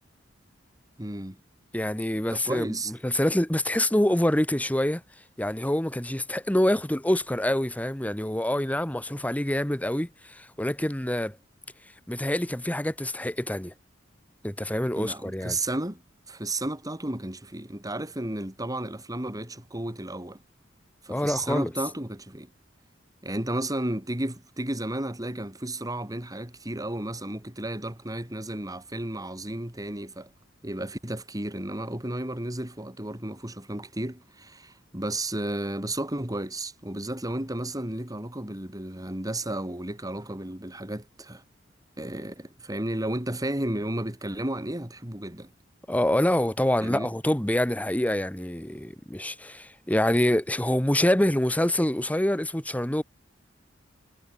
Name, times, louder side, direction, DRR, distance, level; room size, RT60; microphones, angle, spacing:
voice 1, 1.0-1.4 2.3-2.9 14.9-16.0 16.3-20.4 21.0-22.5 23.2-30.3 30.6-41.4 42.0-45.5 46.8-47.1, right 1 dB, 20° right, 3.2 m, -33 dB
voice 2, 1.7-5.0 5.4-11.4 12.1-13.7 14.4-15.6 21.1-21.7 45.9-53.0, left 1 dB, 10° left, 1.2 m, -26 dB
head